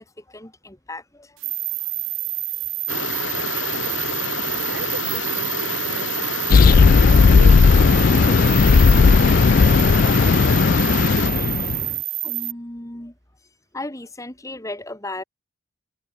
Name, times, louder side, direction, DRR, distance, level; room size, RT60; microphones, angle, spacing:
voice 1, 0.0-1.4 4.5-4.7 11.4-11.6 12.2-13.1 13.7-15.2, left 2 dB, 15° left, 2.2 m, -36 dB
sound 1, 1.4-12.5, right 23 dB, 85° right, 0.5 m, -28 dB
sound 2, 2.9-11.3, left 4 dB, 80° left, 2.3 m, -28 dB
voice 2, 4.5-10.1, right 2 dB, 65° right, 7.4 m, -38 dB
sound 3, 6.5-11.9, left 5 dB, 50° left, 0.3 m, -14 dB
head